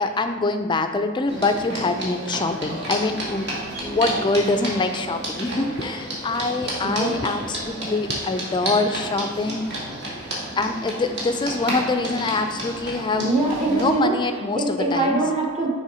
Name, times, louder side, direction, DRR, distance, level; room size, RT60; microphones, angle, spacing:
voice 1, 0.0-3.5 3.9-9.9 10.6-13.3 13.7-15.2, left 3 dB, 20° left, 7 dB, 0.4 m, -24 dB
sound 1, 1.3-14.0, right 1 dB, 55° right, 1.7 m, -31 dB
voice 2, 6.8-7.3 13.2-14.2 14.5-15.7, right 2 dB, 30° right, -1 dB, 1.1 m, -23 dB
6.6 x 3.5 x 4.9 m, 1.5 s
head